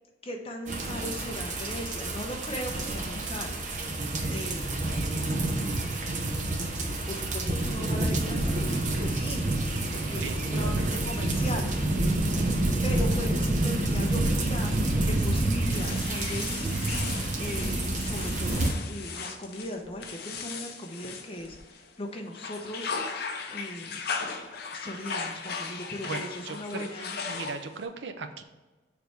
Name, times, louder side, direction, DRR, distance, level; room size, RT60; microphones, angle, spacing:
voice 1, 0.2-3.5 4.3-4.8 5.5-6.1 7.0-9.5 9.9-11.7 12.8-14.8 15.0-16.7 17.4-21.6 22.0-23.0 23.5-24.0 24.6-27.2, equal, 30° left, 2 dB, 0.8 m, -38 dB
sound 1, 0.7-18.7, right 2 dB, 40° right, 0.8 m, -28 dB
voice 2, 10.2-11.0 26.1-26.9 27.3-28.4, right 4 dB, 75° right, 7 dB, 0.6 m, -38 dB
sound 2, 15.7-21.9 22.3-27.8, left 5 dB, 60° left, 0.7 m, -37 dB
6.9 x 3.3 x 4.6 m, 1.2 s
head